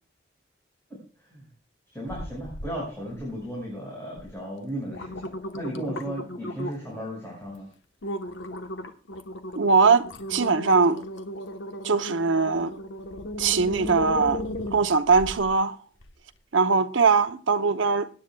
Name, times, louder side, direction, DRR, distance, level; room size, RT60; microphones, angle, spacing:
voice 1, 1.9-7.7, right 1 dB, 15° left, 5.3 m, -35 dB
sound 1, 2.1-2.7 3.1-3.6 4.2-4.3 4.7-6.9 7.4-7.6 8.0-15.5 16.0-16.1, left 1 dB, 80° left, 1.1 m, -36 dB
voice 2, 9.6-11.0 11.8-12.7 13.4-14.4 14.7-15.8 16.5-18.1, right 4 dB, 85° right, 0.8 m, -21 dB
23.5 x 10.0 x 2.3 m
head